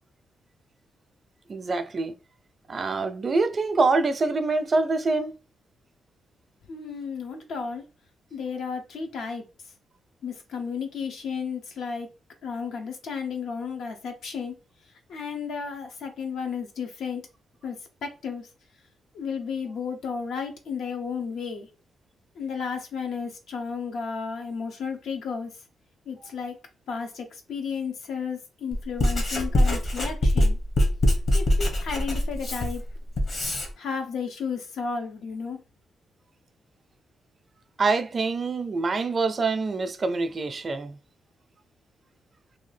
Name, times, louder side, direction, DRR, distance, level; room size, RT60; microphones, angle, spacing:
voice 1, 1.5-2.1 2.7-5.3 37.8-41.0, right 3 dB, 35° right, 0.4 m, -25 dB
voice 2, 6.7-7.8 8.3-9.4 10.2-12.1 12.4-14.5 15.1-17.2 17.6-18.5 19.1-21.7 22.4-25.5 26.1-26.6 26.9-30.6 31.3-32.8 33.8-35.6, left 5 dB, 75° left, 0.6 m, -33 dB
Writing, 28.7-33.7, left 1 dB, 45° left, 0.9 m, -23 dB
2.8 x 2.3 x 3.2 m
cardioid pair, 115°, 0 cm